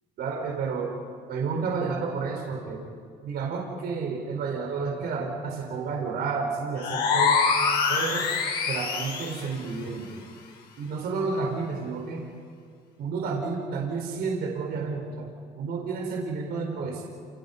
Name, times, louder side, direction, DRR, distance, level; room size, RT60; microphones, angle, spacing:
voice 1, 0.2-0.9 1.3-2.8 3.2-7.4 7.9-8.2 8.7-10.2 10.8-12.2 13.0-15.3 15.6-17.0, right 4 dB, 70° right, 1 dB, 4.6 m, -30 dB
sound 1, 6.8-9.5, left 5 dB, 75° left, 5.3 m, -25 dB
29.5 x 29.0 x 5.6 m, 2.3 s
cardioid pair, 110°, 17 cm